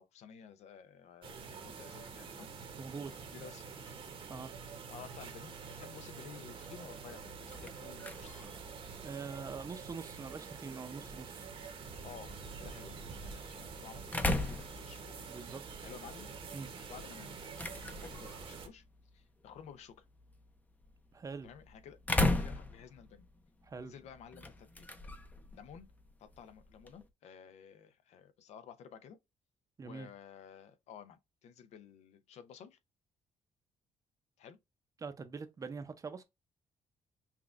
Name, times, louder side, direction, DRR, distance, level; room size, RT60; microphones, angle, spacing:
voice 1, 0.0-2.5 3.3-4.0 4.5-8.5 12.0-15.1 15.8-18.8 19.1-20.0 21.4-23.3 23.8-24.9 25.5-25.9 26.2-29.2 29.8-32.8 34.4-34.6, left 8 dB, 75° left, 0.6 m, -53 dB
sound 1, 1.2-18.7, right 5 dB, 50° right, 1.0 m, -47 dB
voice 2, 2.8-3.1 4.3-4.5 9.0-11.4 15.3-15.6 16.5-16.7 21.1-21.5 23.7-23.9 29.8-30.1 35.0-36.2, right 5 dB, 30° right, 0.6 m, -44 dB
sound 2, 7.2-27.1, left 2 dB, 15° left, 0.6 m, -40 dB
5.8 x 2.3 x 2.4 m
cardioid pair, 120°, 12 cm